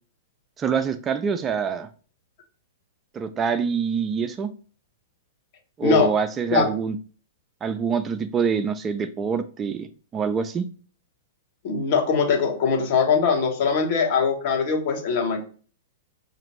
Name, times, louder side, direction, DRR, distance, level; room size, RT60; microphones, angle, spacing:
voice 1, 0.6-1.9 3.1-4.5 5.8-7.0 7.6-10.7, right 6 dB, 20° right, 9 dB, 0.3 m, -25 dB
voice 2, 5.8-6.1 6.5-6.7 11.6-15.4, left 5 dB, 50° left, 3 dB, 1.0 m, -21 dB
4.9 x 2.5 x 3.0 m, 0.40 s
hypercardioid pair, 115°, 0 cm